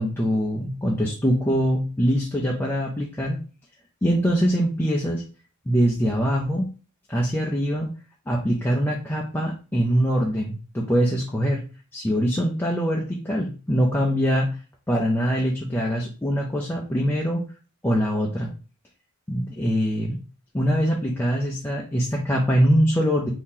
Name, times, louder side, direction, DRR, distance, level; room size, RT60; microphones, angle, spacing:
voice 1, 0.0-3.4 4.0-5.2 5.7-6.7 7.1-7.9 8.3-11.6 11.9-14.6 14.9-17.4 17.8-18.5 19.3-20.2 20.5-23.3, equal, 10° left, -2 dB, 0.4 m, -23 dB
2.7 x 2.7 x 3.7 m, 0.36 s
head